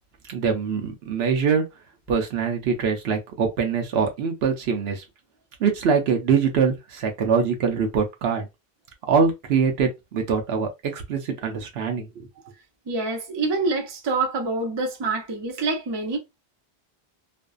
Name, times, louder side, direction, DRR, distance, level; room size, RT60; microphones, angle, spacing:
voice 1, 0.3-1.6 2.1-5.0 5.6-8.5 9.1-12.3, right 6 dB, 75° right, 0.9 m, -23 dB
voice 2, 12.9-16.2, right 3 dB, 35° right, 0.5 m, -26 dB
2.5 x 2.1 x 2.3 m
omnidirectional pair, 1.1 m